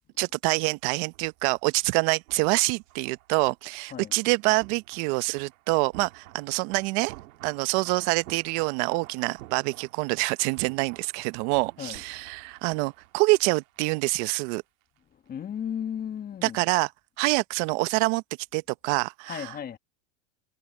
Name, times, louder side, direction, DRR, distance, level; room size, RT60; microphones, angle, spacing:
voice 1, 0.2-7.1 7.4-14.6 16.4-16.9 17.2-18.2 18.5-19.5, right 25 dB, 55° right, 0.9 m, -26 dB
sound 1, 0.8-14.6 14.8-15.0, right 17 dB, 85° right, 1.9 m, -51 dB
voice 2, 15.3-16.6 19.3-19.8, left 8 dB, 20° left, 1.4 m, -34 dB
supercardioid pair, 135°, 41 cm